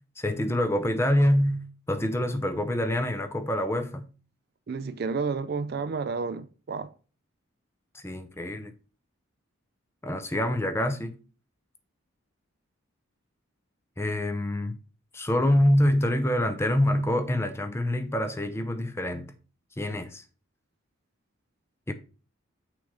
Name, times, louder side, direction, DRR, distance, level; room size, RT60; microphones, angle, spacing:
voice 1, 0.2-4.1 7.9-8.7 10.0-11.1 14.0-14.8 15.1-19.3 19.8-20.2 21.9-22.0, left 1 dB, 10° left, 0.5 m, -26 dB
voice 2, 4.7-6.9, right 4 dB, 45° right, 0.3 m, -31 dB
6.1 x 3.3 x 5.0 m
head